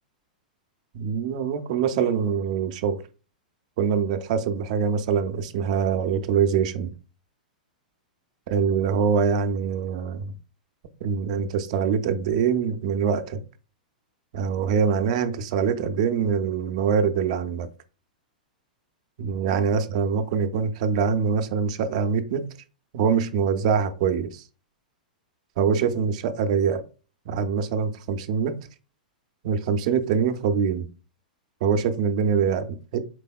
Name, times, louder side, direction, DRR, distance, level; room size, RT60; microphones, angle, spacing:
voice 1, 0.9-3.0 3.8-6.9 8.5-10.3 11.0-13.4 14.3-17.7 19.2-22.4 22.9-24.4 25.6-26.8 27.3-28.5 29.4-30.9 31.6-33.0, right 6 dB, 50° right, 0.5 m, -24 dB
4.6 x 3.4 x 2.2 m
figure-of-eight pair, 100°, 5 cm